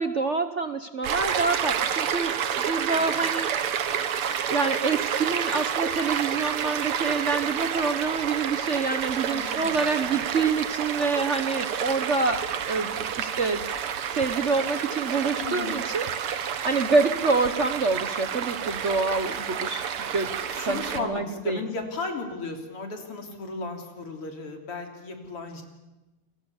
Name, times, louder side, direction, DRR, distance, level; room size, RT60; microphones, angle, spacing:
voice 1, 0.0-2.4 2.7-3.5 4.5-13.6 14.1-16.0 16.3-20.3 20.6-21.6, right 4 dB, 45° right, 9 dB, 1.1 m, -27 dB
Stream, 1.0-21.0, right 8 dB, 85° right, 2.2 m, -29 dB
voice 2, 3.0-3.3 9.3-9.7 10.0-10.2 15.4-15.8 20.3-25.6, left 3 dB, 85° left, 4 dB, 4.3 m, -35 dB
28.5 x 24.0 x 7.2 m, 1.1 s
omnidirectional pair, 2.4 m